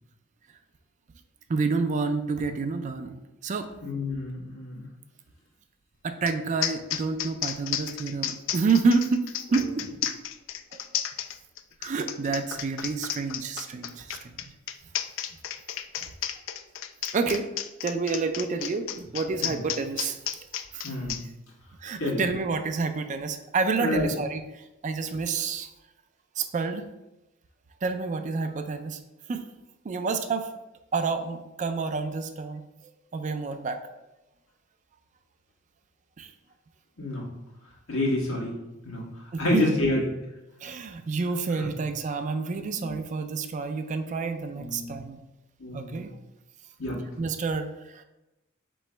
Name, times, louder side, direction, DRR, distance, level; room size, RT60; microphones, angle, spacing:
voice 1, 1.5-3.7 6.0-9.2 9.5-10.1 10.7-10.8 11.8-14.3 16.0-16.1 17.1-17.5 17.8-20.4 20.7-20.9 21.8-25.7 26.4-26.8 27.8-29.0 29.3-29.4 29.8-30.5 30.9-32.6 33.1-33.8 36.2-36.3 39.3-39.7 40.6-45.2 45.7-46.1 47.2-48.0, right 4 dB, 35° right, 8 dB, 0.3 m, -29 dB
voice 2, 3.8-4.9 19.4-19.6 20.8-21.2 22.0-22.2 23.8-24.0 37.0-37.3 37.9-38.5 38.8-39.0 39.4-40.0 42.8-42.9 44.5-44.9 45.6-46.0 46.8-47.0, left 2 dB, 90° left, -4 dB, 1.4 m, -28 dB
sound 1, 6.3-6.4 6.6-21.2, left 11 dB, 65° left, 0.3 m, -33 dB
3.7 x 3.1 x 4.4 m, 0.96 s
head